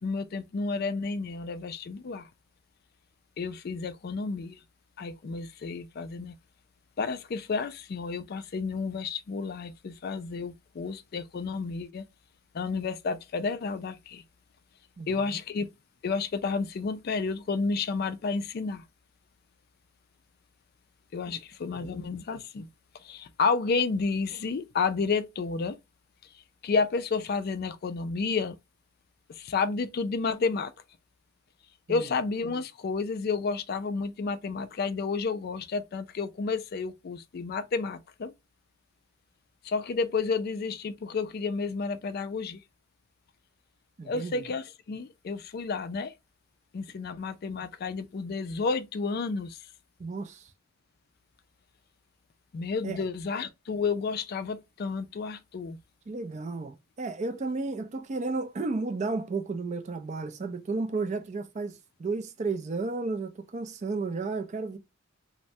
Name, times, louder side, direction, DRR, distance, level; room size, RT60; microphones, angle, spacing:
voice 1, 0.0-2.3 3.4-4.6 5.0-6.3 7.0-12.0 12.5-14.2 15.1-15.7 16.0-18.8 21.1-22.7 23.0-25.8 26.6-28.6 29.3-30.7 31.9-38.3 39.6-42.6 44.1-46.1 46.7-49.6 52.5-55.8, left 4 dB, 45° left, 0.3 m, -31 dB
voice 2, 15.0-15.4 21.3-21.4 21.7-21.9 31.9-32.1 44.0-44.4 50.0-50.5 52.8-53.0 56.1-64.8, right 3 dB, 35° right, 0.4 m, -33 dB
3.2 x 2.1 x 2.6 m
head